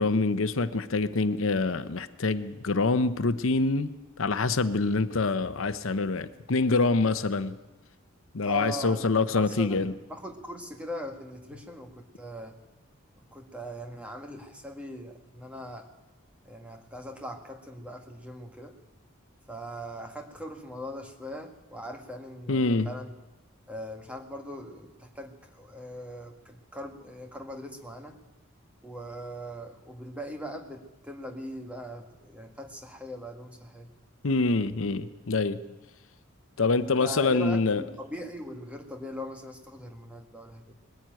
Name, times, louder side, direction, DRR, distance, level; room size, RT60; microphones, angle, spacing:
voice 1, 0.0-3.9 4.2-7.6 8.3-9.9 22.5-22.9 34.2-35.6 36.6-37.8, left 3 dB, 70° left, 12 dB, 0.8 m, -25 dB
voice 2, 8.4-9.1 9.4-12.6 13.2-15.9 16.5-18.8 19.5-23.1 23.7-28.2 28.8-33.9 36.8-40.7, equal, 5° right, 4 dB, 1.7 m, -40 dB
20.5 x 14.5 x 9.1 m, 1.1 s
head